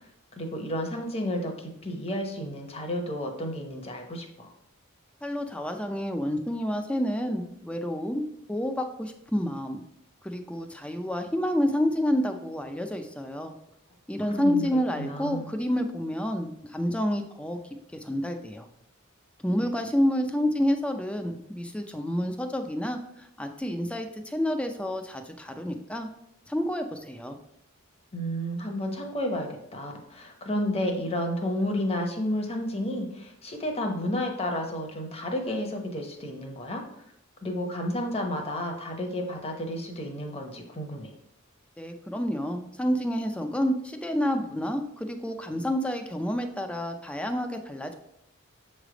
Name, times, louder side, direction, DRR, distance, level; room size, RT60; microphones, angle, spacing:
voice 1, 0.4-4.5 14.2-15.5 28.1-36.8 37.4-41.1, left 1 dB, 30° left, 3 dB, 0.9 m, -31 dB
voice 2, 5.2-8.2 8.5-9.8 10.2-13.5 14.1-17.6 17.9-18.7 19.4-26.1 26.5-27.4 41.8-47.9, equal, 5° left, 5 dB, 0.5 m, -29 dB
7.2 x 3.3 x 4.9 m, 0.78 s
head